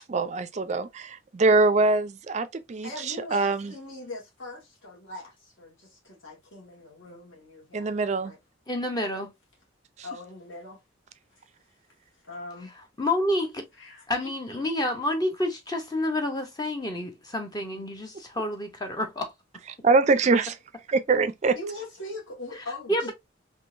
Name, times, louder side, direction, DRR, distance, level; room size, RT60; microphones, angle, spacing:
voice 1, 0.1-3.7 7.7-8.3 19.8-20.5 20.9-21.6, right 3 dB, 35° right, 0.4 m, -23 dB
voice 2, 2.8-7.8 8.2-8.4 10.0-10.8 12.2-12.7 13.8-14.6 17.7-17.9 21.5-23.1, left 2 dB, 70° left, 1.5 m, -41 dB
voice 3, 8.7-9.3 13.0-13.7 14.1-19.3 22.5-23.1, left 1 dB, 20° left, 0.6 m, -29 dB
3.6 x 2.7 x 2.5 m
head